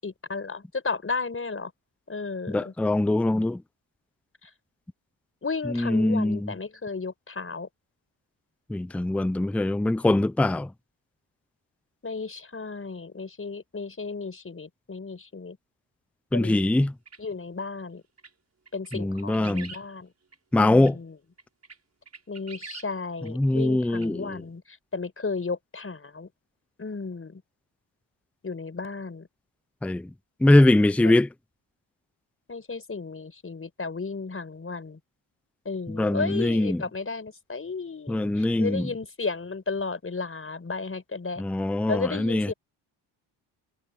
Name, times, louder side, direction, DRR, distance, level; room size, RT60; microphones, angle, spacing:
voice 1, 0.0-1.7 2.1-2.7 5.4-7.7 12.0-15.6 16.3-16.6 17.2-18.0 18.7-20.1 20.6-21.2 22.3-24.6 24.9-26.3 26.8-27.4 28.4-29.3 31.0-31.1 32.5-35.0 35.7-41.4 41.9-42.5, left 4 dB, 25° left, 5.2 m, -34 dB
voice 2, 2.5-3.6 5.7-6.5 8.7-10.7 16.3-16.9 18.9-19.7 20.5-21.0 23.2-24.4 29.8-30.1 30.4-31.3 35.9-36.8 38.1-38.9 41.4-42.5, left 1 dB, 5° left, 0.6 m, -22 dB
sound 1, 17.1-17.2 18.2-18.3 18.7-19.8 20.3-20.4 20.8-20.9 21.4-21.8 22.1-22.9 23.2-23.3 23.9-24.1, right 4 dB, 30° right, 7.1 m, -43 dB
supercardioid pair, 75°, 49 cm